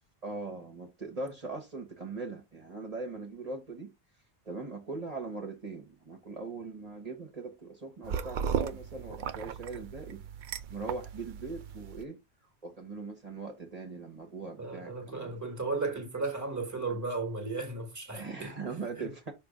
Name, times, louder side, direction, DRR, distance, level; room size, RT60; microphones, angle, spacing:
voice 1, 0.2-3.9 4.5-10.2 10.7-12.2 12.6-15.4 18.1-19.3, right 3 dB, 40° right, 1.1 m, -40 dB
sound 1, 8.0-12.0, right 7 dB, 60° right, 0.6 m, -36 dB
voice 2, 14.6-18.5 18.9-19.1, right 3 dB, 15° right, 1.3 m, -35 dB
6.0 x 3.2 x 5.0 m
omnidirectional pair, 1.0 m